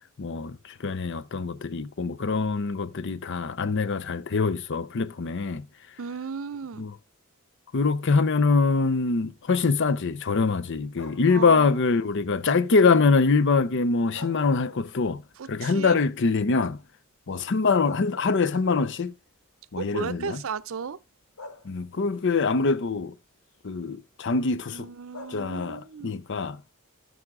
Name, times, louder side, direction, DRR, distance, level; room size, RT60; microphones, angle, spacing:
voice 1, 0.2-5.7 6.8-6.9 7.7-15.2 15.5-16.8 17.3-19.1 19.7-20.4 21.6-23.1 23.6-24.9 25.3-26.6, left 4 dB, 60° left, 0.6 m, -24 dB
voice 2, 6.0-6.8 11.3-11.7 15.4-16.0 19.8-21.0 24.7-26.2, right 5 dB, 65° right, 0.5 m, -35 dB
sound 1, 10.9-11.5 13.9-15.3 15.7-15.8 17.4-17.5 17.8-19.0 20.0-20.1 21.4-22.1 25.1-26.0, left 2 dB, 80° left, 1.3 m, -44 dB
12.5 x 4.9 x 3.6 m
head